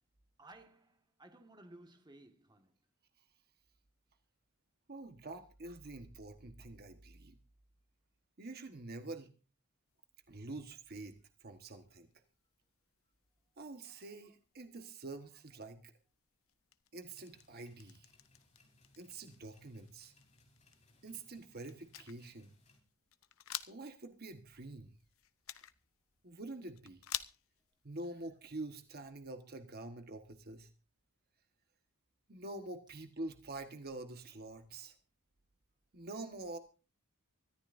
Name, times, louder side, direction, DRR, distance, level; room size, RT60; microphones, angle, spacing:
voice 1, 0.4-2.7, right 2 dB, 20° right, 1.7 m, -58 dB
voice 2, 4.9-7.4 8.4-9.3 10.3-12.1 13.6-15.9 16.9-18.1 19.0-20.1 21.0-22.5 23.7-24.9 26.2-27.0 27.8-30.7 32.3-35.0 35.9-36.6, right 2 dB, 45° right, 1.4 m, -46 dB
sound 1, 9.9-29.1, left 13 dB, 65° left, 0.8 m, -52 dB
sound 2, 17.1-22.8, left 2 dB, 30° left, 3.7 m, -68 dB
24.5 x 14.0 x 2.7 m
head